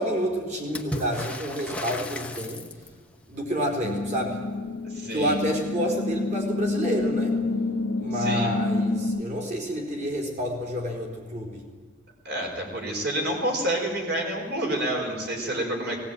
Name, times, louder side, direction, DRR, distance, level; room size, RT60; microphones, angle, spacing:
voice 1, 0.0-2.6 3.3-4.4 5.1-7.4 8.0-11.6, equal, 35° right, 1 dB, 4.1 m, -29 dB
Water / Splash splatter, 0.7-3.1 6.4-6.5 6.8-7.5 8.6-8.7, left 1 dB, 5° left, 1.1 m, -35 dB
sound 1, 3.8-9.2, left 3 dB, 70° left, 1.2 m, -28 dB
voice 2, 4.9-5.4 8.1-8.5 12.2-16.0, right 1 dB, 55° right, 1 dB, 4.8 m, -28 dB
18.0 x 17.5 x 9.2 m, 1.5 s
head